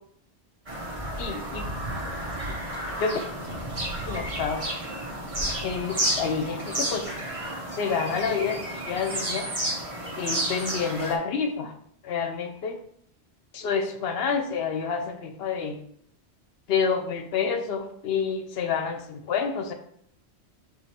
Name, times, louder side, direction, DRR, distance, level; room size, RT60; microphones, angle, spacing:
Bird vocalization bird call bird song, 0.7-11.2, right 1 dB, 30° right, 0.9 m, -31 dB
voice 1, 1.2-1.7 2.5-2.6 3.0-3.2 4.1-4.7 5.6-7.2 7.7-9.5 10.2-11.7 12.0-12.8 13.5-15.8 16.7-19.7, left 6 dB, 65° left, 7 dB, 0.8 m, -28 dB
5.0 x 2.4 x 4.3 m, 0.67 s
omnidirectional pair, 1.2 m